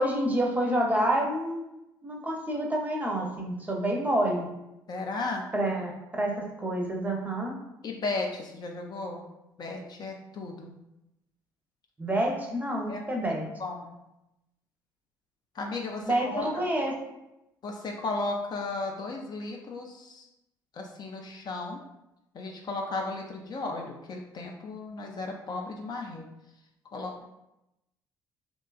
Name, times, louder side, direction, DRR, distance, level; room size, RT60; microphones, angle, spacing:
voice 1, 0.0-1.7 2.0-4.5 5.5-6.3 6.6-7.6 12.0-13.4 16.0-16.9, right 1 dB, 15° right, 0 dB, 0.6 m, -28 dB
voice 2, 4.9-5.5 7.8-9.2 9.6-10.7 12.9-13.9 15.5-16.6 17.6-20.3 20.7-21.8 22.3-26.3 26.9-27.2, left 3 dB, 40° left, 1 dB, 0.4 m, -35 dB
2.8 x 2.2 x 2.3 m, 0.90 s
figure-of-eight pair, 50°, 11 cm